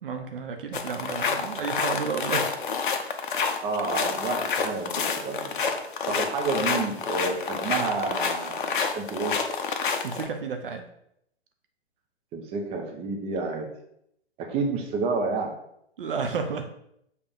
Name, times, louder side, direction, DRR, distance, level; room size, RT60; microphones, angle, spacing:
voice 1, 0.0-2.6 10.0-10.9 16.0-16.7, right 5 dB, 55° right, 5 dB, 0.8 m, -32 dB
sound 1, 0.7-10.3, left 5 dB, 50° left, 0.8 m, -28 dB
voice 2, 3.6-5.7 6.1-9.3 12.3-13.7 14.5-15.5, right 4 dB, 15° right, 1 dB, 0.9 m, -30 dB
7.0 x 3.4 x 5.2 m, 0.75 s
figure-of-eight pair, 120°, 33 cm